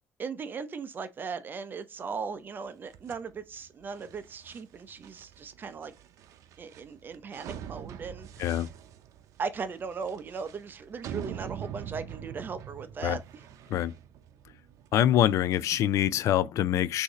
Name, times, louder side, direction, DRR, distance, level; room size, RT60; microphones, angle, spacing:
voice 1, 0.2-5.9 6.6-8.6 9.4-13.4, right 5 dB, 40° right, 0.6 m, -38 dB
sound 1, 2.9-16.2, right 9 dB, 85° right, 0.6 m, -44 dB
voice 2, 14.9-17.0, left 11 dB, 75° left, 0.3 m, -25 dB
6.3 x 2.7 x 3.0 m
cardioid pair, 135°, 5 cm